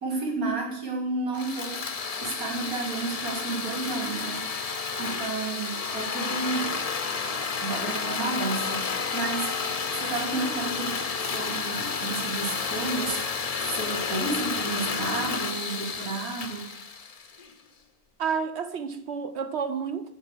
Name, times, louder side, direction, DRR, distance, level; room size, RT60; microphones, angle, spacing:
voice 1, 0.0-1.9 2.2-6.8 7.6-9.5 9.9-16.6, right 3 dB, 85° right, 3.2 m, -32 dB
sound 1, 1.3-17.5, left 5 dB, 40° left, 0.6 m, -31 dB
voice 2, 18.2-20.1, right 6 dB, 60° right, 0.8 m, -30 dB
9.5 x 7.3 x 7.2 m
omnidirectional pair, 1.5 m